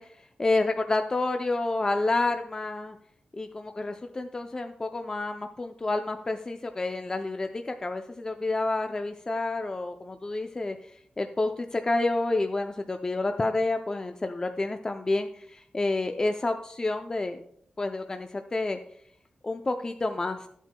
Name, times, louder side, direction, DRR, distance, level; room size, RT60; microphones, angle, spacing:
voice 1, 0.0-3.0 3.3-17.4 17.8-18.8 19.4-20.5, left 2 dB, 25° left, 6 dB, 0.4 m, -29 dB
13.0 x 8.1 x 2.2 m, 0.66 s
wide cardioid pair, 150°, 3 cm